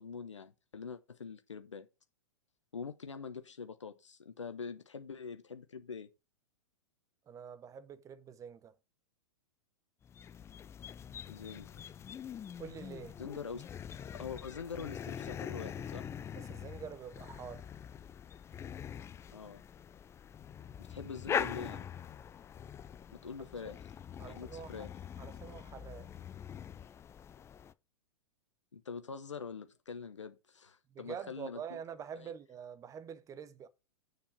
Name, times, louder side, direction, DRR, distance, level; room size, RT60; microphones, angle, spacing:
voice 1, 0.0-1.9 2.7-6.1 11.3-12.0 13.2-13.6 14.1-16.1 19.3-19.6 20.9-21.9 23.1-23.9 24.2-24.9 28.7-31.8 32.1-32.3, left 5 dB, 80° left, 1.0 m, -44 dB
voice 2, 7.3-8.7 12.6-13.2 16.3-17.7 24.2-24.9 25.2-26.1 30.9-33.7, right 7 dB, 20° right, 0.9 m, -46 dB
sound 1, 10.0-27.7, left 8 dB, 15° left, 0.5 m, -43 dB
7.0 x 5.2 x 6.7 m
figure-of-eight pair, 100°, 15 cm